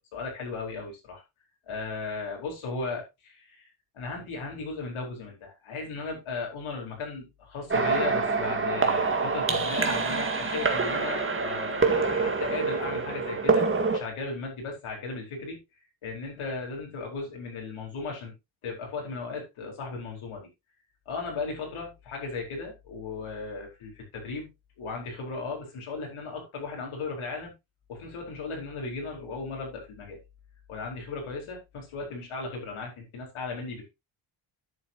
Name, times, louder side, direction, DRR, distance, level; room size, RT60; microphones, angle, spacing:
voice 1, 0.1-1.2 1.7-3.7 3.9-15.6 16.0-18.3 18.6-20.5 21.1-24.5 24.8-27.5 27.9-30.2 30.7-33.9, left 4 dB, 90° left, 4.6 m, -36 dB
sound 1, 7.7-14.0, right 4 dB, 25° right, 2.0 m, -26 dB
11.0 x 8.8 x 2.9 m
cardioid pair, 125°, 48 cm